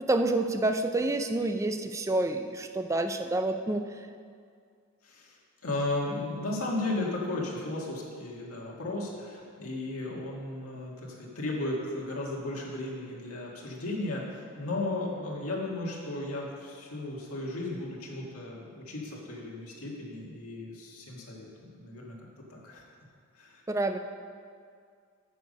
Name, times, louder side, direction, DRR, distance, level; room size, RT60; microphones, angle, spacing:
voice 1, 0.0-3.8 23.7-24.0, right 2 dB, 15° right, 7 dB, 0.4 m, -28 dB
voice 2, 5.0-5.4 5.6-14.3 14.6-22.2 22.5-22.8 23.4-23.6, left 2 dB, 85° left, -3 dB, 1.9 m, -35 dB
9.3 x 6.8 x 5.4 m, 2.2 s
head